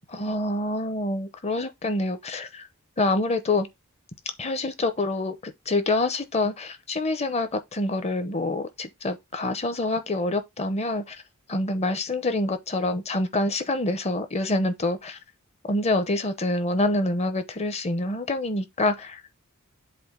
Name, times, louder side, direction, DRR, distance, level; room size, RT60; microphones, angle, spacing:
voice 1, 0.1-2.7 3.0-3.7 4.4-11.2 11.5-15.2 15.7-19.3, left 2 dB, 30° left, 0.8 m, -26 dB
7.7 x 2.6 x 5.0 m
head